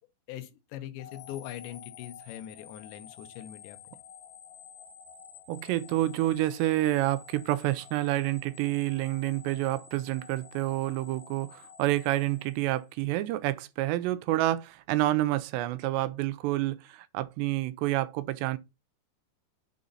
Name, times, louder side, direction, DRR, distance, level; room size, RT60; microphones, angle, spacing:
voice 1, 0.3-3.8, left 12 dB, 85° left, 3.1 m, -42 dB
sound 1, 1.0-13.2, left 8 dB, 65° left, 2.9 m, -51 dB
voice 2, 5.5-18.6, right 16 dB, 80° right, 2.6 m, -28 dB
9.2 x 3.9 x 4.0 m
omnidirectional pair, 5.0 m